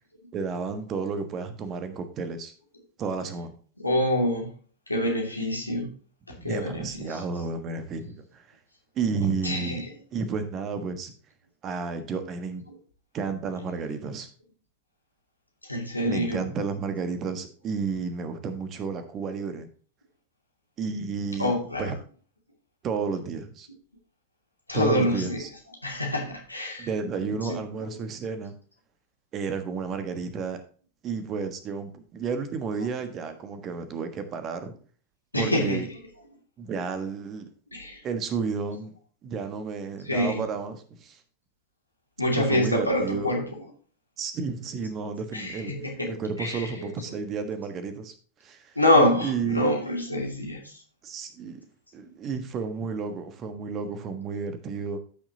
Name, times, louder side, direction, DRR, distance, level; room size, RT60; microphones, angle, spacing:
voice 1, 0.3-2.5 3.0-3.5 6.3-8.6 8.9-9.8 10.1-11.1 11.6-12.6 13.1-14.3 16.0-19.7 20.8-21.9 22.8-23.7 24.7-25.5 26.8-28.5 29.3-30.6 31.0-34.7 35.3-35.9 36.6-37.5 38.0-38.9 39.2-41.2 42.3-43.3 44.2-45.7 46.1-48.1 48.4-48.7 49.2-49.7 51.0-51.6 51.9-55.0, right 5 dB, 30° right, 9 dB, 1.4 m, -32 dB
voice 2, 3.8-4.5 4.9-5.9 6.4-7.2 9.4-9.8 15.7-16.4 21.4-21.9 24.7-25.4 25.8-26.9 27.4-27.6 35.3-35.8 37.7-38.0 40.1-40.5 42.2-43.4 45.3-46.7 48.8-50.7, left 1 dB, 85° left, 0 dB, 2.3 m, -26 dB
14.0 x 6.1 x 2.9 m, 0.42 s
figure-of-eight pair, 90°, 0 cm